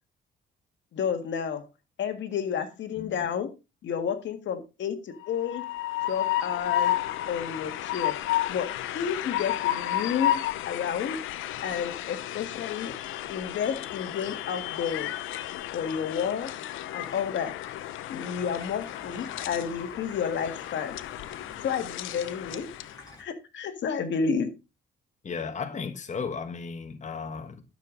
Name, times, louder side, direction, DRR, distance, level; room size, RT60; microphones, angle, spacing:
voice 1, 0.9-1.6 2.0-3.5 3.8-5.6 6.1-6.9 7.3-8.2 8.5-8.7 8.9-11.2 11.6-12.9 13.3-15.1 15.7-16.5 16.9-17.5 18.1-21.0 21.6-22.7 23.2-24.5, left 7 dB, 65° left, 1.9 m, -31 dB
voice 2, 3.0-3.3 24.2-24.3 25.2-27.6, left 5 dB, 35° left, 1.3 m, -35 dB
Train, 5.2-23.0, left 13 dB, 85° left, 0.8 m, -32 dB
Water tap faucet / Sink (filling or washing), 17.0-23.2, left 2 dB, 20° left, 7.5 m, -52 dB
12.5 x 6.9 x 3.9 m
cardioid pair, 90°, 20 cm